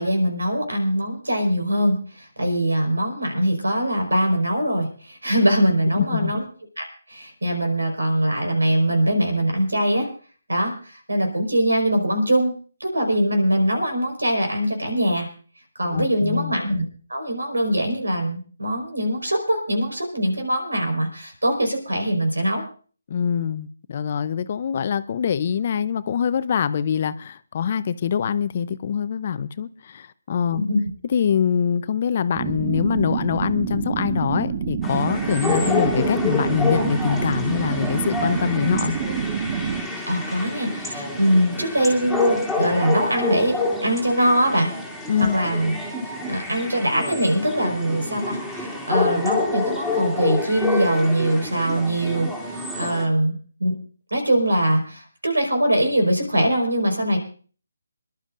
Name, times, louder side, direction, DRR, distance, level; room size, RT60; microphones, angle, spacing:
voice 1, 0.0-6.4 6.8-10.1 10.5-12.5 12.8-15.3 15.7-16.8 17.1-22.6 30.6-30.8 40.1-43.6 43.8-44.7 45.2-45.7 46.3-53.7 54.1-57.2, right 1 dB, 90° right, 4.7 m, -22 dB
voice 2, 6.0-6.3 15.9-16.5 23.1-30.6 31.1-39.0 45.1-45.4, left 8 dB, 40° left, 0.6 m, -24 dB
sound 1, 32.4-39.8, right 7 dB, 35° right, 1.2 m, -27 dB
sound 2, 34.8-53.0, left 2 dB, 5° right, 2.6 m, -28 dB
27.5 x 11.5 x 2.5 m
figure-of-eight pair, 155°, 0 cm